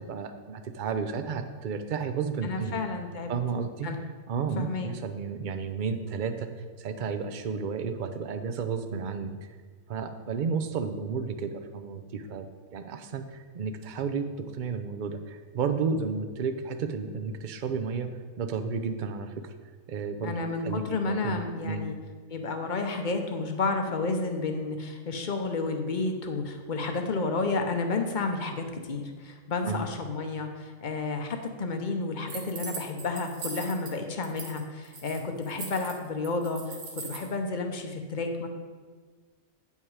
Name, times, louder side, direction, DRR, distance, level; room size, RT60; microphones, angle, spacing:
voice 1, 0.0-2.8 3.3-3.9 4.3-6.5 6.8-9.3 9.9-14.3 14.5-18.1 18.4-19.5 19.9-20.3 20.6-20.8 21.2-21.9 29.6-29.9, right 5 dB, 50° right, 8 dB, 0.6 m, -32 dB
voice 2, 2.4-3.3 3.8-4.0 4.6-4.9 20.2-22.0 22.3-38.5, left 3 dB, 40° left, 4 dB, 0.8 m, -31 dB
sound 1, 32.3-33.9 34.2-34.6 34.8-37.3, right 4 dB, 75° right, 1.6 m, -40 dB
8.8 x 5.5 x 4.8 m, 1.5 s
omnidirectional pair, 1.4 m